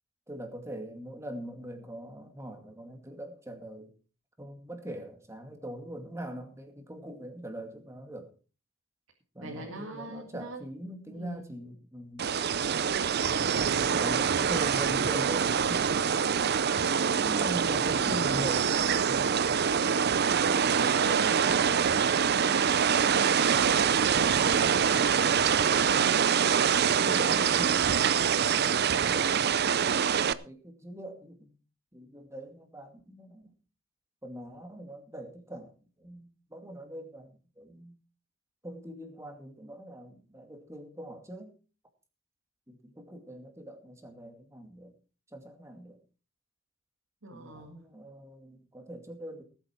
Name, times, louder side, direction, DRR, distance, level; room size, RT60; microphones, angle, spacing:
voice 1, 0.3-3.9 4.4-8.3 9.3-12.3 13.7-15.8 17.1-18.7 19.0-19.3 20.5-21.9 26.9-29.7 30.0-31.5 31.9-33.5 34.2-35.7 36.0-38.0 38.6-41.5 42.7-44.9 45.3-46.0 47.3-49.4, right 1 dB, 15° right, 5 dB, 2.3 m, -42 dB
voice 2, 9.4-10.6 11.1-11.5 13.9-14.2 20.3-21.9 22.2-23.9 47.2-47.9, right 2 dB, 85° right, 1 dB, 2.1 m, -40 dB
sound 1, 12.2-30.3, right 7 dB, 55° right, 0.6 m, -25 dB
18.5 x 8.1 x 4.5 m, 0.36 s
head